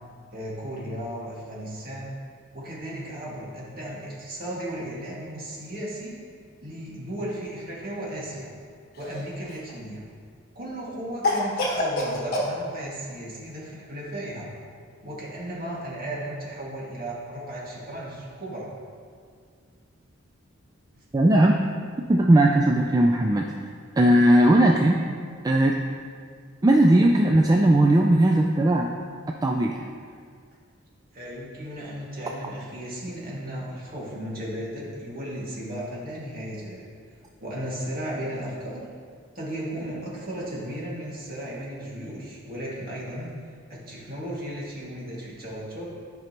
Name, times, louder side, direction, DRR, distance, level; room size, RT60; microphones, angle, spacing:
voice 1, 0.3-2.1 2.5-6.2 6.6-8.5 9.0-10.0 10.5-14.5 15.0-18.7 31.1-36.9 37.4-38.9 39.4-43.3 43.7-45.9, right 1 dB, 45° right, -6 dB, 2.0 m, -35 dB
Cough, 8.9-9.7 11.2-12.5, left 1 dB, 50° left, 1.4 m, -26 dB
voice 2, 21.1-21.6 22.1-23.5 24.0-25.0 25.4-25.8 26.6-28.9 29.4-29.8, right 1 dB, 20° right, 1 dB, 0.3 m, -18 dB
12.5 x 5.4 x 2.9 m, 2.1 s
head